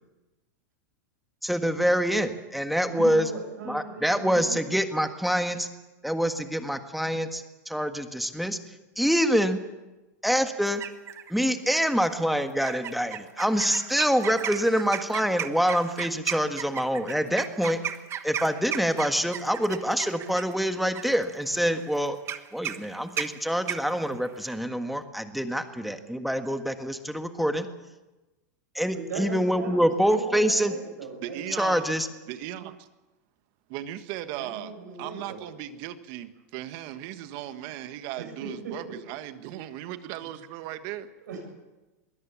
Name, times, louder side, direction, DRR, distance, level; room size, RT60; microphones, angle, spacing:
voice 1, 1.4-3.3 3.6-5.7 6.0-8.6 9.0-9.6 10.2-10.8 11.3-17.8 18.2-22.2 22.5-27.7 28.7-30.7 31.6-32.1, equal, ahead, 7 dB, 1.6 m, -26 dB
voice 2, 2.9-4.6 28.9-31.7 34.4-35.4 38.2-39.0 41.2-41.4, right 4 dB, 85° right, 3 dB, 7.8 m, -38 dB
sound 1, 10.6-11.3 11.7-12.0 12.6-24.6, right 10 dB, 30° right, 1.3 m, -35 dB
voice 3, 31.2-31.9 32.3-32.9 33.7-34.7 35.0-41.1, right 12 dB, 50° right, 10 dB, 1.6 m, -37 dB
22.5 x 17.0 x 7.4 m, 1.1 s
supercardioid pair, 130°, 9 cm